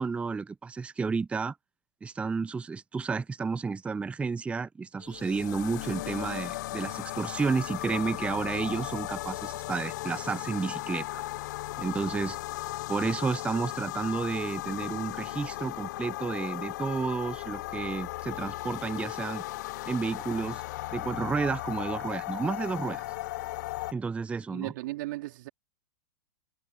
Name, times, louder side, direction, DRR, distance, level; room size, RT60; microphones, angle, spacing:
voice 1, 0.0-1.6 2.0-11.2 11.8-12.4 12.9-19.4 19.9-20.6 20.9-23.0 23.9-24.7, right 4 dB, 10° right, 0.6 m, -31 dB
sound 1, 5.0-23.9, left 17 dB, 50° left, 0.3 m, -36 dB
voice 2, 24.5-25.5, right 18 dB, 50° right, 3.3 m, -36 dB
figure-of-eight pair, 100°, 12 cm